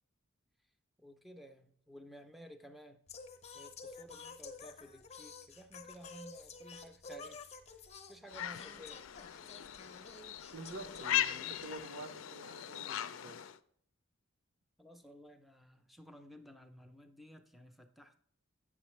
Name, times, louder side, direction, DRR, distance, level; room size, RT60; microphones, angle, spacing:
voice 1, 1.0-3.0 3.5-7.8 8.1-9.0 14.8-18.2, equal, ahead, 6 dB, 0.6 m, -54 dB
Singing, 3.1-11.8, left 4 dB, 35° left, 0.8 m, -51 dB
sound 1, 8.3-13.6, left 12 dB, 75° left, 0.4 m, -39 dB
voice 2, 10.5-13.4, right 2 dB, 60° right, 3 dB, 1.0 m, -48 dB
8.4 x 6.7 x 3.2 m, 0.62 s
head